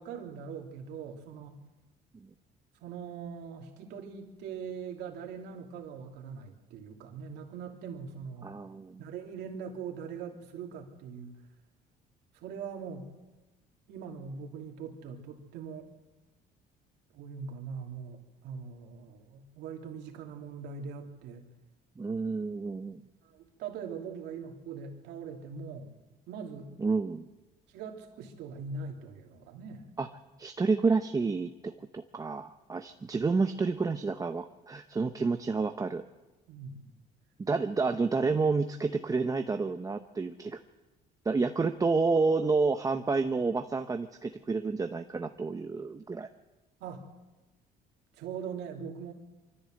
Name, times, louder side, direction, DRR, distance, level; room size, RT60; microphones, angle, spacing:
voice 1, 0.0-1.6 2.8-8.5 9.0-11.4 12.3-13.1 13.9-15.9 17.1-21.4 23.2-25.9 26.3-26.7 27.7-29.9 36.5-36.9 46.8-47.1 48.1-49.1, right 6 dB, 85° right, 2 dB, 3.1 m, -41 dB
voice 2, 8.4-9.0 22.0-23.0 26.8-27.3 30.0-30.1 30.4-36.0 37.4-40.6 41.2-46.3, right 4 dB, 20° right, 7 dB, 0.8 m, -29 dB
24.0 x 14.0 x 7.8 m, 1.1 s
cardioid pair, 110°, 17 cm